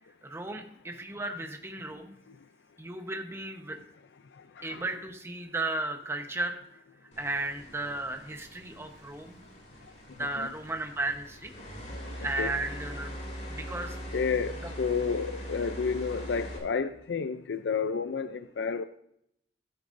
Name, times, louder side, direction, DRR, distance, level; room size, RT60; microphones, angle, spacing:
voice 1, 0.3-2.2 2.8-3.8 4.6-6.6 7.2-9.4 10.2-11.5 12.2-13.1 13.5-14.0, right 2 dB, 15° right, 4 dB, 1.0 m, -34 dB
sound 1, 7.1-16.6, equal, 40° left, 2.8 m, -42 dB
voice 2, 10.2-10.5 12.4-12.5 14.1-18.8, left 5 dB, 80° left, 10 dB, 0.4 m, -31 dB
13.0 x 8.8 x 2.6 m, 0.72 s
head